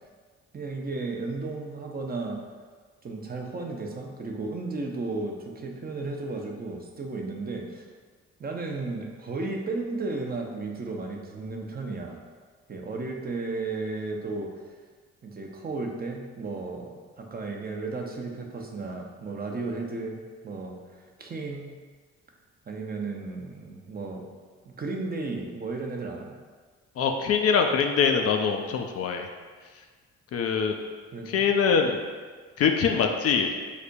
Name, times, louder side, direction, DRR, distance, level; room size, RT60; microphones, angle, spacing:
voice 1, 0.5-2.4 3.0-7.9 8.4-12.2 12.7-14.5 15.2-20.7 21.2-21.8 22.7-24.3 24.8-26.4 31.1-31.4, right 3 dB, 30° right, 1 dB, 0.6 m, -34 dB
voice 2, 27.0-29.3 30.3-30.8 31.3-32.0 32.6-33.5, left 6 dB, 50° left, 4 dB, 0.4 m, -23 dB
4.9 x 2.1 x 2.6 m, 1.5 s
hypercardioid pair, 45°, 30 cm